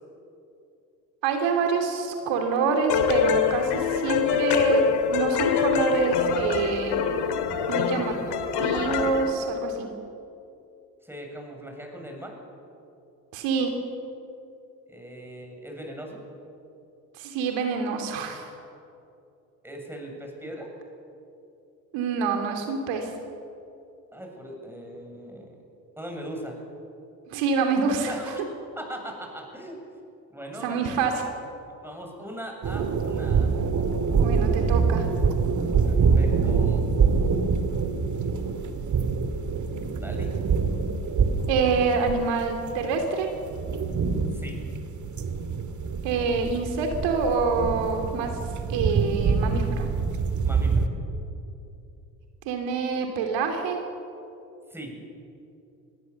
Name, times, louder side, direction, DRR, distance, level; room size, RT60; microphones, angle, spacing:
voice 1, 1.2-4.8 5.1-7.0 7.7-8.1 8.6-9.9 13.3-13.7 17.2-18.5 21.9-23.1 27.3-28.1 30.6-31.1 34.2-35.0 41.5-43.3 46.0-48.3 48.7-49.9 52.4-53.8, right 4 dB, 60° right, 4 dB, 3.0 m, -26 dB
sound 1, 2.9-9.3, left 7 dB, 55° left, 2.8 m, -25 dB
voice 2, 11.0-12.4 14.9-16.2 19.6-20.7 24.1-25.6 26.0-26.6 28.1-28.4 28.8-29.8 30.3-31.0 31.8-33.6 35.8-36.9 40.0-40.3 44.3-44.6 50.4-50.9 54.7-55.0, equal, 5° right, 1 dB, 7.8 m, -39 dB
sound 2, 32.6-50.9, right 5 dB, 35° right, 2.4 m, -25 dB
25.0 x 21.5 x 7.2 m, 2.7 s
hypercardioid pair, 60°, 49 cm